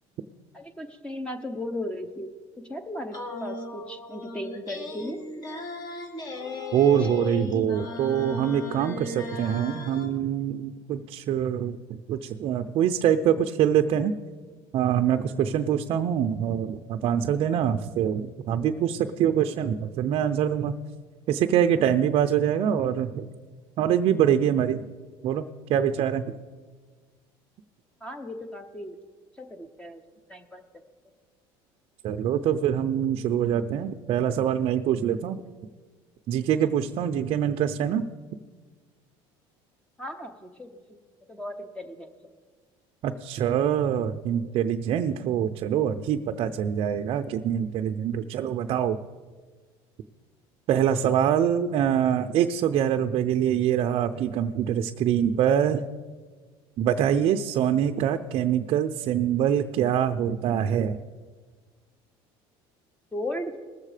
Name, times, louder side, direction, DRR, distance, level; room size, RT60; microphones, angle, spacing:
voice 1, 0.5-2.3 2.7-5.2 7.0-7.1 28.0-29.0 29.4-30.0 30.3-30.6 40.0-40.8 41.3-42.3 63.1-63.6, left 1 dB, 10° left, 7 dB, 0.8 m, -36 dB
sound 1, 3.1-10.1, left 2 dB, 35° left, 1.8 m, -36 dB
voice 2, 6.7-11.8 12.1-14.1 14.7-20.8 21.3-23.3 23.8-24.9 25.2-25.4 25.7-26.2 32.0-35.4 36.3-38.0 43.0-49.0 50.7-55.8 56.8-61.0, right 9 dB, 50° right, 7 dB, 0.5 m, -24 dB
19.5 x 7.4 x 4.9 m, 1.4 s
cardioid pair, 125°, 11 cm